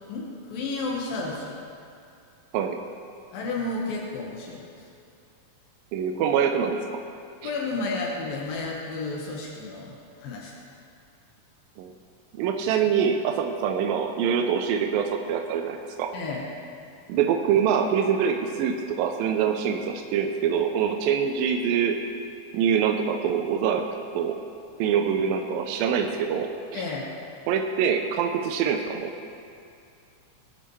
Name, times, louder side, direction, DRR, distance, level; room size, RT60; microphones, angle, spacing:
voice 1, 0.1-1.6 3.3-4.9 7.4-10.5 16.1-16.4 26.7-27.1, left 3 dB, 80° left, -3 dB, 3.2 m, -32 dB
voice 2, 5.9-7.0 7.4-7.5 11.8-11.9 12.3-16.1 17.1-22.0 22.5-24.4 24.8-26.8 27.5-29.1, right 7 dB, 85° right, 4 dB, 2.4 m, -25 dB
20.5 x 11.5 x 3.2 m, 2.5 s
omnidirectional pair, 4.1 m